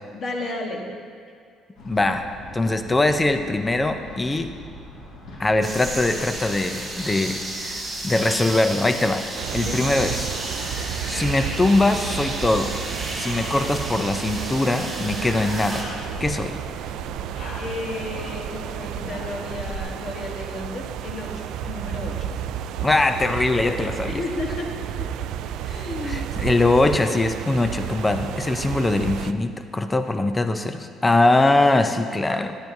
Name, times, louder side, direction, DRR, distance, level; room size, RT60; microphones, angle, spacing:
voice 1, 0.1-0.9 9.6-9.8 17.5-22.4 24.1-25.3 25.6-26.4, left 2 dB, 35° left, 1 dB, 1.2 m, -33 dB
sound 1, 1.8-19.8, left 1 dB, 55° left, 1.7 m, -41 dB
voice 2, 1.8-2.3 2.5-4.5 5.4-9.2 9.5-10.3 11.1-12.7 13.2-15.9 16.2-16.6 22.8-24.2 26.0-32.6, left 2 dB, 10° left, 8 dB, 0.4 m, -22 dB
sound 2, 5.6-15.8, right 2 dB, 15° right, 1.4 m, -32 dB
sound 3, 9.4-29.3, right 9 dB, 70° right, 0.3 m, -32 dB
14.0 x 10.5 x 2.7 m, 2.3 s
cardioid pair, 180°, 0 cm